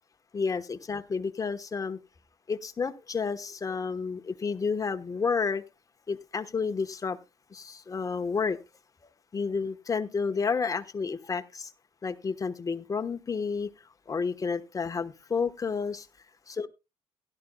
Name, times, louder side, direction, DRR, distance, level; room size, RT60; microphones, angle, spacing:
voice 1, 0.3-2.0 2.5-5.6 6.1-7.2 7.5-8.6 9.0-11.7 12.0-13.7 14.1-16.1 16.5-16.7, left 5 dB, 30° left, 1.1 m, -31 dB
16.0 x 12.0 x 2.3 m
cardioid pair, 90°, 12 cm